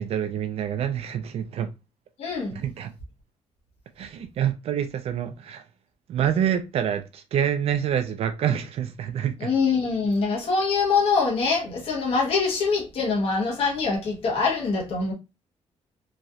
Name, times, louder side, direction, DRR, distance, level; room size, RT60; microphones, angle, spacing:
voice 1, 0.0-1.7 2.6-2.9 4.0-5.6 6.1-9.5, right 9 dB, 60° right, 0.4 m, -27 dB
voice 2, 2.2-2.6 9.4-15.1, left 4 dB, 55° left, 1.1 m, -24 dB
3.0 x 2.3 x 2.7 m
cardioid pair, 170°, 12 cm